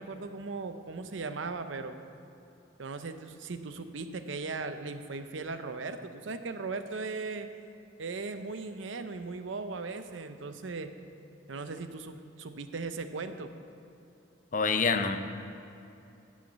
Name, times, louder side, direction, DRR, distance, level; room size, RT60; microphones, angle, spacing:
voice 1, 0.0-2.0 2.8-7.5 8.0-10.9 11.5-13.5, right 3 dB, 80° right, 9 dB, 0.7 m, -38 dB
voice 2, 14.5-15.2, left 4 dB, 40° left, 8 dB, 0.6 m, -26 dB
10.5 x 6.4 x 8.0 m, 2.8 s
head